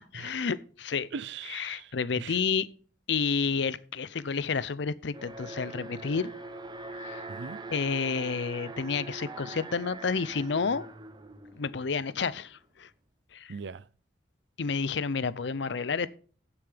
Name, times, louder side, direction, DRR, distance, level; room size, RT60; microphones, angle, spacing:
voice 1, 0.1-1.1 1.5-2.7 3.1-6.3 7.0-7.2 7.7-10.9 11.6-12.9 13.3-13.5 14.6-16.1, left 5 dB, 65° left, 0.6 m, -30 dB
voice 2, 1.1-2.4 7.3-7.6 13.5-13.9, right 5 dB, 65° right, 0.5 m, -40 dB
Alarm, 5.1-12.2, right 2 dB, 25° right, 0.9 m, -43 dB
15.5 x 7.0 x 3.4 m
head